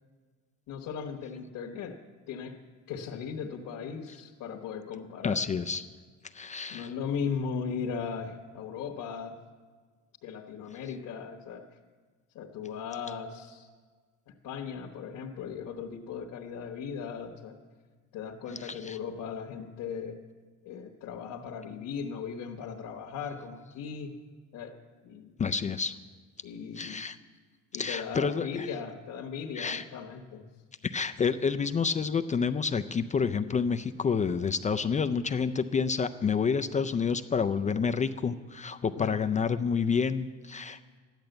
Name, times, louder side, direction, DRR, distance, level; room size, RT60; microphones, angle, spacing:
voice 1, 0.7-2.0 2.3-2.5 2.9-5.4 6.7-9.4 10.2-11.6 12.3-13.7 14.3-17.6 18.1-20.2 20.6-24.1 24.5-24.8 25.0-25.4 26.4-27.0 27.7-30.4 38.9-39.2, left 6 dB, 70° left, 0 dB, 1.3 m, -37 dB
voice 2, 5.2-5.8 6.3-6.9 18.6-19.0 25.4-25.9 26.8-27.2 27.7-28.5 29.6-29.8 30.8-40.8, left 5 dB, 25° left, 8 dB, 0.4 m, -29 dB
13.5 x 10.5 x 7.9 m, 1.5 s
cardioid pair, 145°, 32 cm